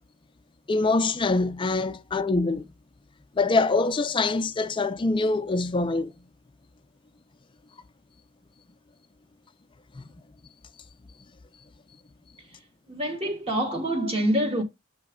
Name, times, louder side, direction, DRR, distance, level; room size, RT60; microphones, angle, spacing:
voice 1, 0.7-2.7 3.4-6.1 10.0-10.1, left 3 dB, 25° left, 0.4 m, -24 dB
voice 2, 12.9-14.6, right 1 dB, 25° right, 1.2 m, -26 dB
6.7 x 3.1 x 4.9 m
head